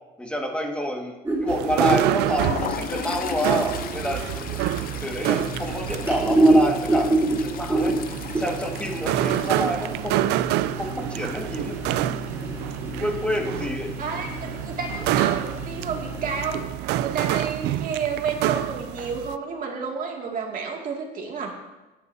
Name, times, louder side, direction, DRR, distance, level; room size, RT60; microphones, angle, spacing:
voice 1, 0.2-4.3 5.0-7.9 8.4-12.2 13.0-13.9, equal, 5° left, 1 dB, 1.8 m, -28 dB
sound 1, 1.2-16.6, right 1 dB, 15° right, 3.0 m, -28 dB
sound 2, 1.5-19.4, right 14 dB, 90° right, 0.4 m, -28 dB
Toilet flush, 2.0-12.7 13.0-13.2 13.5-13.7 14.7-15.2, left 10 dB, 60° left, 0.6 m, -37 dB
voice 2, 14.0-21.5, right 5 dB, 55° right, 0 dB, 2.3 m, -31 dB
17.0 x 9.7 x 2.7 m, 1.1 s
cardioid pair, 110°, 17 cm